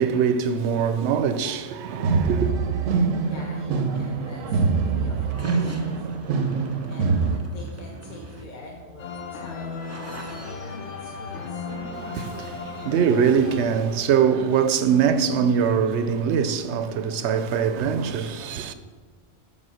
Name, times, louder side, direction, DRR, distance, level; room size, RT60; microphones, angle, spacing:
voice 1, 0.0-2.6 11.7-18.7, right 7 dB, 70° right, 0.8 m, -23 dB
sound 1, 1.9-7.4, right 4 dB, 90° right, 1.1 m, -24 dB
voice 2, 3.2-6.3 6.9-11.7, left 2 dB, 40° left, 1.0 m, -45 dB
sound 2, 3.7-11.5, right 2 dB, 15° right, 0.6 m, -43 dB
sound 3, 9.0-14.2, left 5 dB, 70° left, 1.1 m, -36 dB
7.4 x 5.3 x 6.3 m
omnidirectional pair, 1.3 m